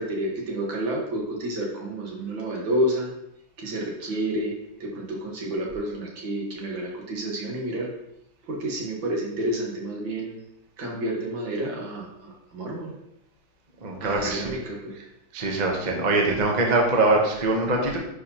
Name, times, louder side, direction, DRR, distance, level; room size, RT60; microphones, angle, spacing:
voice 1, 0.0-3.1 3.6-4.5 4.8-7.9 8.5-10.4 10.8-12.9 14.0-14.9, right 1 dB, 70° right, -2 dB, 2.2 m, -29 dB
voice 2, 13.8-14.6 14.9-15.0 15.3-18.0, right 2 dB, 35° right, 1 dB, 0.7 m, -23 dB
9.4 x 4.6 x 2.9 m, 0.83 s
omnidirectional pair, 2.2 m